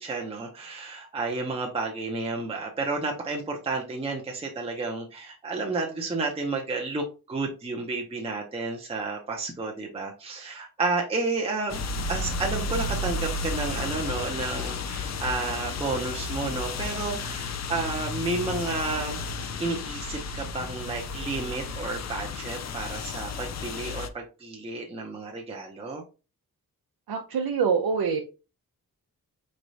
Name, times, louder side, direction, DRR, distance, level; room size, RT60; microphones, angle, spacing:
voice 1, 0.0-11.8 12.1-19.2 19.6-26.0, right 3 dB, 15° right, 0 dB, 0.5 m, -31 dB
sound 1, 11.7-24.1, left 3 dB, 50° left, 0.5 m, -33 dB
voice 2, 27.1-28.2, right 6 dB, 90° right, 2 dB, 0.7 m, -25 dB
4.5 x 3.2 x 2.6 m, 0.32 s
wide cardioid pair, 170°, 36 cm